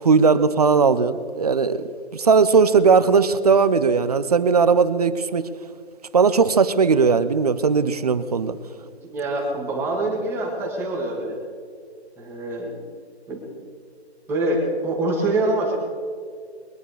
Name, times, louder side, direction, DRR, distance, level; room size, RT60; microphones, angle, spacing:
voice 1, 0.0-1.8 2.1-5.5 6.1-8.6, right 5 dB, 35° right, 14 dB, 0.6 m, -18 dB
voice 2, 8.8-11.4 12.2-12.8 13.3-13.4 14.3-15.8, right 2 dB, 5° right, -1 dB, 1.8 m, -25 dB
22.5 x 9.8 x 5.0 m, 2.1 s
figure-of-eight pair, 155°, 33 cm